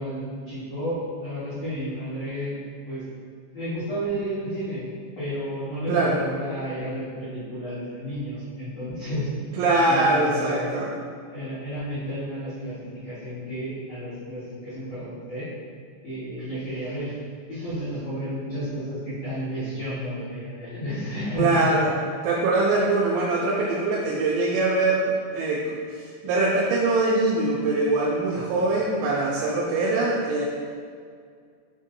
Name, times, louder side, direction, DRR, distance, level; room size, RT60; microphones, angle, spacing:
voice 1, 0.0-2.5 2.9-3.0 3.5-4.9 5.2-9.3 9.9-10.8 11.3-12.8 13.0-15.5 16.0-17.1 17.5-21.7 28.3-28.6, equal, 65° left, -15 dB, 1.6 m, -32 dB
voice 2, 5.9-6.2 9.6-10.9 21.4-22.0 22.2-30.5, right 2 dB, 85° right, -5 dB, 2.7 m, -23 dB
7.1 x 2.7 x 2.6 m, 2.1 s
omnidirectional pair, 5.2 m